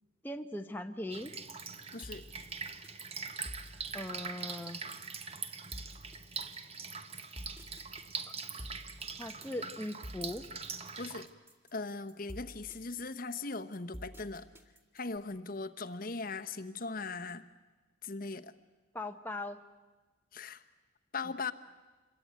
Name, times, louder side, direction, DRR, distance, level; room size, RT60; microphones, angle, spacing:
voice 1, 0.2-1.3 3.9-4.8 8.3-8.4 9.2-10.5 18.9-19.6 21.2-21.5, left 1 dB, 10° left, 5 dB, 0.8 m, -40 dB
Drip, 1.1-11.3, right 5 dB, 30° right, 1.2 m, -43 dB
voice 2, 1.9-2.2 11.0-11.3 11.7-14.5 14.9-17.4 18.0-18.5 20.3-20.6 21.1-21.5, left 3 dB, 45° left, 9 dB, 1.0 m, -39 dB
sound 1, 2.0-15.2, equal, 10° right, 2.1 m, -50 dB
27.0 x 22.5 x 9.4 m, 1.2 s
head